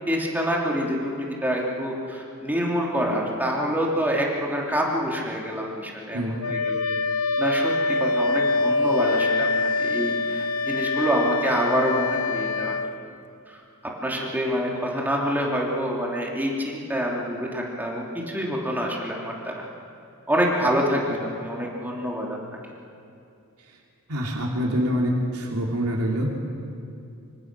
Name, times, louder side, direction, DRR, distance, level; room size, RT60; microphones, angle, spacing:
voice 1, 0.1-6.8 7.4-7.7 8.0-12.7 13.5-13.6 14.0-19.5 20.3-22.4, equal, 10° right, -2 dB, 3.1 m, -26 dB
Wind instrument woodwind instrument, 6.4-12.9, left 3 dB, 70° left, 0.9 m, -24 dB
voice 2, 24.1-26.3, equal, 90° right, -2 dB, 3.2 m, -25 dB
25.5 x 25.0 x 6.2 m, 2.5 s
head